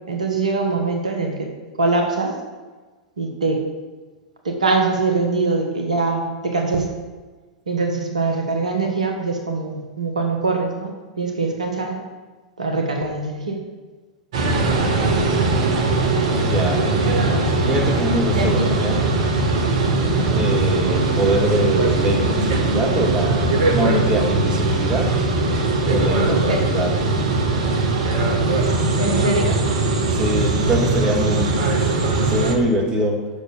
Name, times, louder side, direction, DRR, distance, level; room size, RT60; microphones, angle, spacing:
voice 1, 0.1-1.5 1.8-2.3 3.2-3.6 4.4-6.9 7.7-10.9 11.2-12.0 12.6-13.6 18.3-18.7 26.5-26.6 29.0-29.6, right 3 dB, 80° right, 2 dB, 1.4 m, -22 dB
sound 1, 14.3-32.5, right 3 dB, 60° right, 1.4 m, -20 dB
voice 2, 16.4-19.1 20.0-25.2 25.9-27.2 28.1-28.3 30.1-33.3, right 1 dB, 25° right, 0 dB, 2.2 m, -24 dB
7.0 x 6.6 x 6.8 m, 1.3 s
figure-of-eight pair, 95°, 4 cm